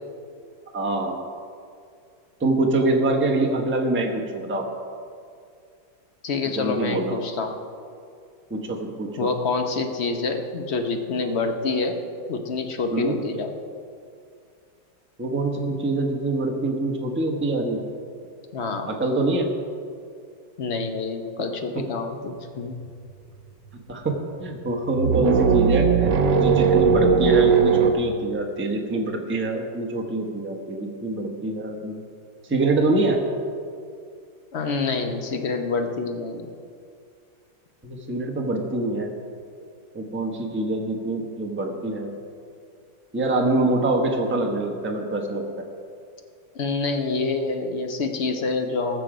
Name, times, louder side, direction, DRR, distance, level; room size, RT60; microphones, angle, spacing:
voice 1, 0.7-1.2 2.4-4.7 6.5-7.2 8.5-9.3 12.9-13.2 15.2-17.8 18.9-19.5 21.7-21.8 23.7-31.9 32.4-33.2 37.8-39.1 39.9-42.1 43.1-45.6, right 2 dB, 10° right, 1 dB, 0.8 m, -25 dB
voice 2, 6.2-7.5 9.2-12.0 12.3-13.5 18.5-18.9 20.6-22.8 34.5-36.4 46.5-49.0, left 4 dB, 50° left, 5 dB, 0.8 m, -27 dB
sound 1, 22.9-23.0 23.3-24.0 24.7-27.9, right 6 dB, 85° right, 1.6 m, -19 dB
19.5 x 6.8 x 5.0 m, 2.3 s
omnidirectional pair, 2.1 m